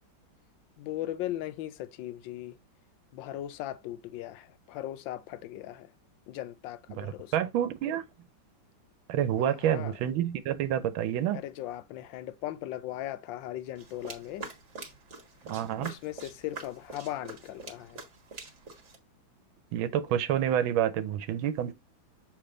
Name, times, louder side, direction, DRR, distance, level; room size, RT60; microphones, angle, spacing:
voice 1, 0.8-2.6 3.1-5.9 6.3-7.3 9.4-10.0 11.3-14.5 15.8-18.1, left 13 dB, 75° left, 1.3 m, -38 dB
voice 2, 7.0-8.0 9.1-11.4 15.4-15.9 19.7-21.7, right 10 dB, 80° right, 1.5 m, -28 dB
sound 1, 13.8-19.0, right 4 dB, 40° right, 1.6 m, -45 dB
6.8 x 3.6 x 3.8 m
omnidirectional pair, 2.2 m